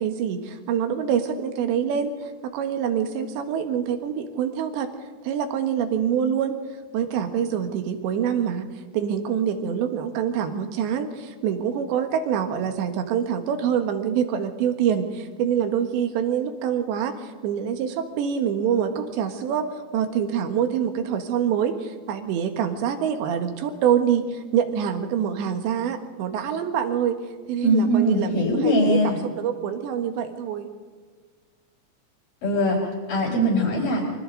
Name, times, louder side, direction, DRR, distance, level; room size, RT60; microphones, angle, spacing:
voice 1, 0.0-2.1 2.4-4.9 5.2-6.6 6.9-8.6 8.9-19.7 19.9-27.2 27.5-30.7, right 8 dB, 80° right, 6 dB, 3.7 m, -25 dB
voice 2, 27.6-29.2 32.4-34.1, equal, 50° left, -4 dB, 6.0 m, -21 dB
27.5 x 24.5 x 4.0 m, 1.5 s
omnidirectional pair, 5.2 m